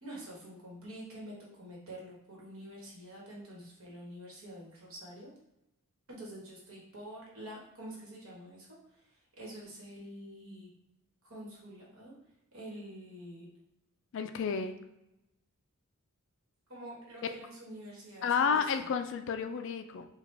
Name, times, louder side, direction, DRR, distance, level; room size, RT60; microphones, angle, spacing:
voice 1, 0.0-5.3 6.1-8.7 9.4-10.7 11.2-12.1 12.5-13.5 16.7-18.6, right 1 dB, 65° right, -4 dB, 1.5 m, -47 dB
voice 2, 14.1-14.7 18.2-20.1, left 6 dB, 55° left, 8 dB, 0.3 m, -31 dB
4.8 x 2.3 x 3.4 m, 0.89 s
head